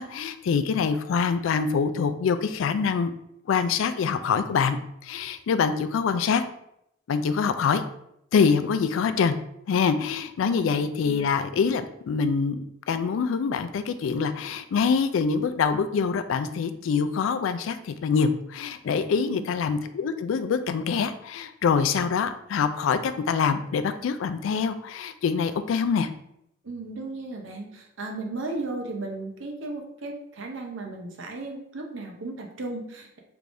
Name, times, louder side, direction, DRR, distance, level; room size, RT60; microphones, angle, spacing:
voice 1, 0.0-3.1 3.5-6.4 7.1-7.8 8.3-9.4 9.7-12.6 12.9-26.1, left 6 dB, 85° left, 11 dB, 0.3 m, -25 dB
voice 2, 10.4-10.7 19.2-19.6 26.6-33.2, right 2 dB, 80° right, 2 dB, 0.7 m, -35 dB
3.4 x 2.6 x 3.3 m, 0.76 s
head